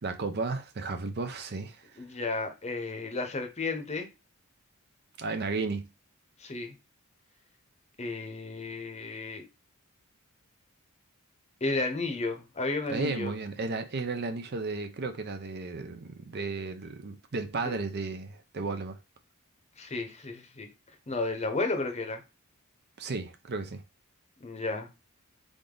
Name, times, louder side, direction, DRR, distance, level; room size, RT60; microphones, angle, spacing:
voice 1, 0.0-1.8 5.2-5.8 12.9-19.0 23.0-23.8, right 3 dB, 50° right, 0.6 m, -34 dB
voice 2, 2.0-4.1 6.4-6.7 8.0-9.4 11.6-13.3 17.6-17.7 19.8-20.7 21.1-22.2 24.4-24.9, left 3 dB, 30° left, 0.9 m, -33 dB
3.8 x 3.7 x 3.8 m
head